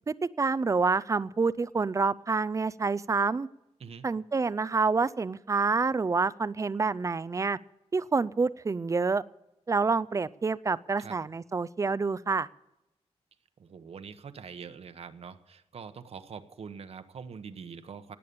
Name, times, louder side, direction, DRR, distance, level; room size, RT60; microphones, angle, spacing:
voice 1, 0.1-3.5 4.0-7.6 7.9-9.2 9.7-12.5, right 4 dB, 30° right, 16 dB, 0.4 m, -27 dB
voice 2, 13.6-18.2, right 6 dB, 65° right, 10 dB, 1.1 m, -44 dB
18.5 x 8.4 x 6.9 m, 0.92 s
wide cardioid pair, 135°, 11 cm